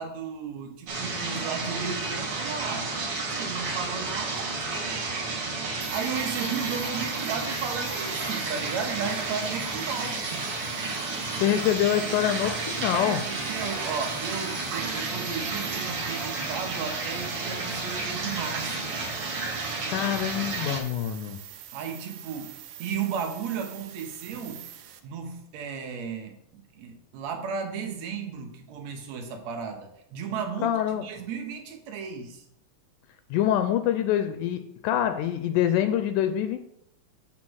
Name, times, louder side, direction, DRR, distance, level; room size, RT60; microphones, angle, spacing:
voice 1, 0.0-2.9 3.3-5.3 5.6-10.5 12.9-18.9 21.7-24.6 25.0-32.4, right 6 dB, 65° right, 4 dB, 2.0 m, -35 dB
sound 1, 0.9-20.8, right 3 dB, 50° right, 2.3 m, -32 dB
sound 2, 5.8-25.0, right 11 dB, 85° right, 2.3 m, -45 dB
voice 2, 11.4-13.2 19.9-21.4 30.6-31.1 33.3-36.6, left 11 dB, 80° left, 8 dB, 2.0 m, -25 dB
8.7 x 3.7 x 6.2 m, 0.76 s
omnidirectional pair, 3.7 m